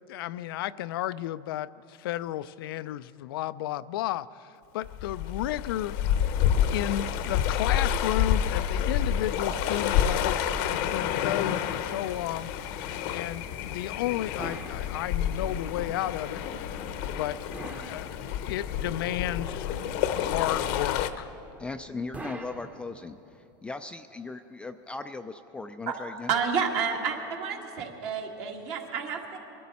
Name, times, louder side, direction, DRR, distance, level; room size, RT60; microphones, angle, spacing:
voice 1, 0.1-6.0 6.7-12.5 13.1-16.4 17.2-19.7 20.2-21.3, left 13 dB, 80° left, 0.4 m, -33 dB
sound 1, 4.8-21.1, left 9 dB, 60° left, 0.8 m, -29 dB
sound 2, 14.4-15.6 17.5-18.7 22.1-23.4, right 2 dB, 10° right, 0.8 m, -42 dB
voice 2, 21.6-26.3, left 3 dB, 10° left, 0.3 m, -38 dB
voice 3, 26.3-29.4, right 6 dB, 55° right, 1.8 m, -30 dB
22.0 x 12.0 x 4.2 m
supercardioid pair, 140°, 12 cm